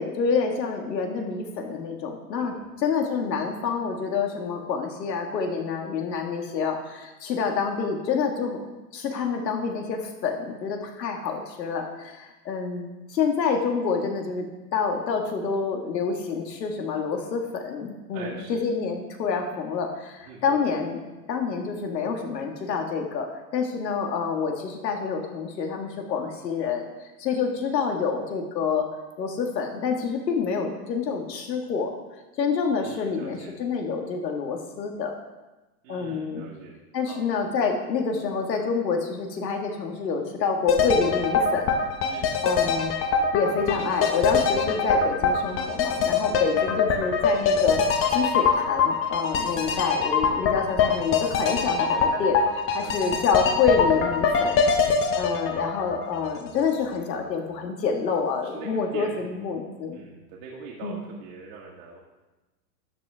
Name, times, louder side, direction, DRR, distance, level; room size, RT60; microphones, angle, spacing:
voice 1, 0.0-8.6 8.9-14.5 14.7-21.0 21.3-28.9 29.2-31.9 32.4-35.1 35.9-36.5 36.9-41.8 42.4-43.0 43.3-52.4 52.7-54.6 55.2-60.0 60.8-61.0, left 5 dB, 90° left, 3 dB, 2.1 m, -27 dB
voice 2, 18.1-18.7 20.3-20.6 32.8-33.6 35.8-36.8 37.1-37.2 42.1-42.4 49.6-49.8 52.8-53.1 58.5-59.6 59.9-62.0, right 5 dB, 55° right, -4 dB, 2.0 m, -42 dB
sound 1, 40.7-56.6 56.9-57.0, left 5 dB, 25° left, 1.0 m, -23 dB
12.5 x 8.6 x 3.6 m, 1.1 s
hypercardioid pair, 135°, 48 cm